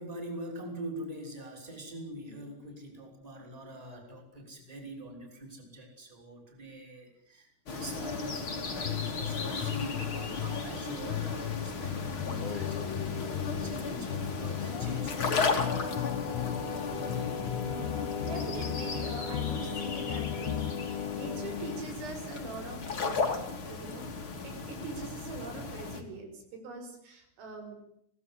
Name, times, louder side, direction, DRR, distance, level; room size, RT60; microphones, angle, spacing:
voice 1, 0.0-15.8, right 1 dB, 5° right, 1 dB, 5.7 m, -44 dB
sound 1, 7.7-26.0, left 4 dB, 30° left, 2.8 m, -36 dB
sound 2, 8.8-10.7 11.1-13.7 14.1-16.7 17.1-19.7 20.1-20.8, left 13 dB, 80° left, 2.0 m, -36 dB
Singing, 12.1-21.8, left 6 dB, 45° left, 2.2 m, -38 dB
voice 2, 17.7-27.8, right 3 dB, 75° right, 4 dB, 8.1 m, -43 dB
24.5 x 18.5 x 9.9 m, 0.72 s
omnidirectional pair, 5.9 m